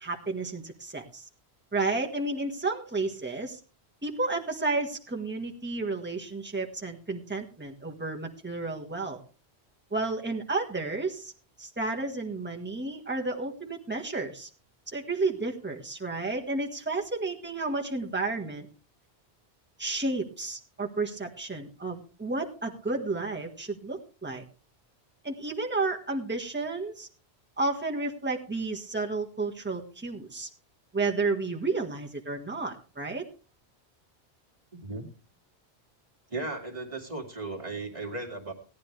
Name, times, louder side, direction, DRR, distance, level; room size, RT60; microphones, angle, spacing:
voice 1, 0.0-1.2 1.7-3.6 4.0-9.2 9.9-11.3 11.6-14.5 14.9-18.7 19.8-24.4 25.2-27.1 27.6-30.5 30.9-33.2, right 3 dB, 10° right, 1 dB, 1.5 m, -32 dB
voice 2, 34.7-35.1 36.3-38.5, right 2 dB, 30° right, 0 dB, 2.4 m, -36 dB
17.5 x 10.5 x 3.3 m, 0.35 s
omnidirectional pair, 1.1 m